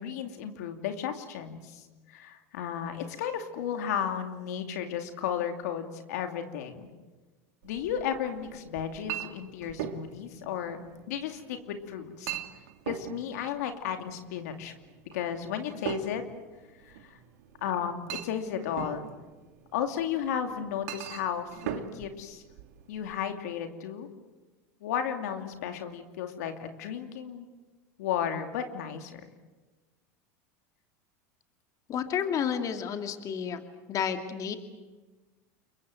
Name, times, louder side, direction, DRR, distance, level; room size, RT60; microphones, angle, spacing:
voice 1, 0.0-6.9 7.6-10.8 11.1-12.3 12.9-14.7 15.1-16.2 16.8-17.2 17.6-19.1 19.7-22.4 22.9-24.1 24.8-27.5 28.0-29.2, left 8 dB, 80° left, 6 dB, 2.7 m, -34 dB
Chink clink, 7.6-23.2, right 9 dB, 75° right, 2.4 m, -41 dB
voice 2, 31.9-33.6 33.9-34.6, left 8 dB, 40° left, 6 dB, 2.5 m, -31 dB
29.0 x 22.5 x 7.8 m, 1.2 s
supercardioid pair, 105°, 9 cm